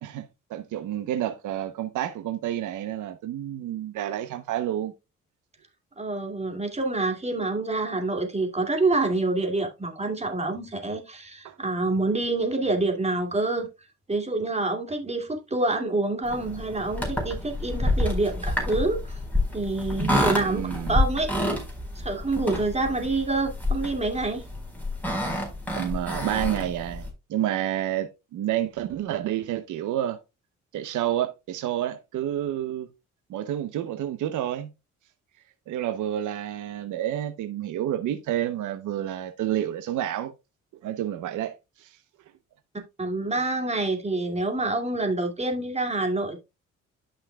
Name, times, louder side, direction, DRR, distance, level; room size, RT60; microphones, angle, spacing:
voice 1, 0.0-4.9 11.4-11.6 20.4-21.0 22.9-23.0 25.7-30.2 30.7-32.9 33.3-34.7 35.7-40.3 40.8-42.0, right 11 dB, 80° right, 0.9 m, -29 dB
voice 2, 6.0-13.7 14.1-19.2 19.5-21.3 21.9-24.4 43.0-46.4, right 2 dB, 20° right, 2.3 m, -27 dB
sound 1, 16.3-27.1, left 1 dB, 5° left, 4.4 m, -28 dB
12.5 x 5.7 x 2.3 m
cardioid pair, 90°, 30 cm